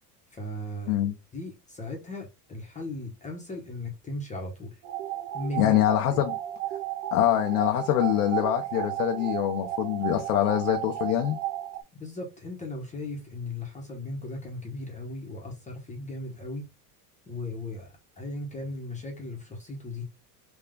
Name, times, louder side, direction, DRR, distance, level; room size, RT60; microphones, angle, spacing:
voice 1, 0.3-1.0 1.3-4.8 5.3-5.8 6.1-6.2 12.0-16.7 17.3-20.1, left 2 dB, 15° left, 0.9 m, -37 dB
sound 1, 4.8-11.8, right 13 dB, 80° right, 0.9 m, -34 dB
voice 2, 5.6-6.4 7.1-11.4, left 12 dB, 80° left, 0.7 m, -24 dB
3.5 x 2.4 x 3.6 m
supercardioid pair, 125°, 45 cm